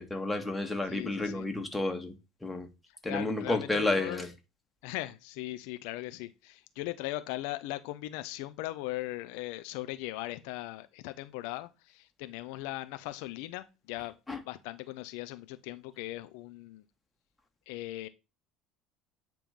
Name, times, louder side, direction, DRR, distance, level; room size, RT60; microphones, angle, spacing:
voice 1, 0.0-2.1 2.4-2.7 3.0-4.3 14.3-14.4, left 2 dB, 10° left, 1.6 m, -31 dB
voice 2, 0.8-1.5 2.9-4.3 4.8-14.2 14.5-16.8 17.7-18.1, left 17 dB, 75° left, 0.5 m, -39 dB
9.0 x 3.0 x 5.2 m
hypercardioid pair, 75°, 0 cm